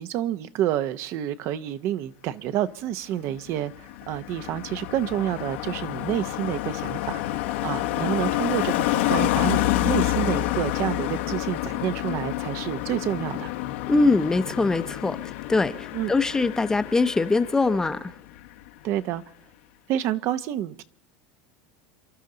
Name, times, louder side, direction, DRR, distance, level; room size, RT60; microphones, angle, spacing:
voice 1, 0.0-13.5 15.9-16.1 18.8-19.2 19.9-20.8, right 12 dB, 50° right, 13 dB, 0.8 m, -29 dB
Car passing by, 3.3-18.1 18.4-18.7, left 14 dB, 85° left, 1.3 m, -28 dB
sound 1, 7.3-18.3, left 14 dB, 60° left, 1.4 m, -45 dB
voice 2, 13.9-18.1, left 3 dB, 10° left, 11 dB, 0.7 m, -23 dB
28.0 x 12.0 x 3.9 m, 0.67 s
supercardioid pair, 150°, 6 cm